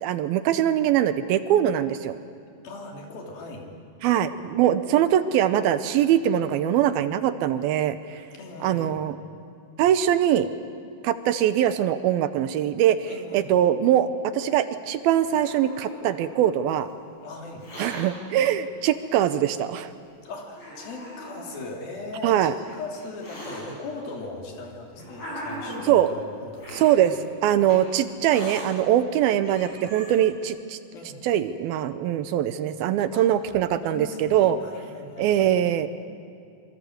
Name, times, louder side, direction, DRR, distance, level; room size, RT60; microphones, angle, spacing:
voice 1, 0.0-2.2 4.0-8.2 8.6-9.2 9.8-10.5 11.0-14.1 14.3-16.9 17.8-19.9 22.2-22.5 25.8-26.1 26.7-27.1 27.4-30.8 31.2-34.6 35.2-35.9, right 11 dB, 80° right, 12 dB, 2.6 m, -22 dB
voice 2, 2.6-3.7 8.3-9.0 13.0-13.6 17.2-17.7 20.2-27.5 30.9-31.2 33.1-33.4 33.8-35.5, left 3 dB, 65° left, 0 dB, 4.8 m, -39 dB
Hiss, 14.8-16.5 17.4-18.0 19.0-19.1 19.9-20.0 20.5-21.6 22.4-23.6 24.5-26.0 26.6-26.9 27.6-27.8 28.2-28.7 29.1-29.2 29.4-30.2, equal, 45° left, 7.1 m, -39 dB
26.5 x 24.5 x 7.9 m, 2.4 s
omnidirectional pair, 4.5 m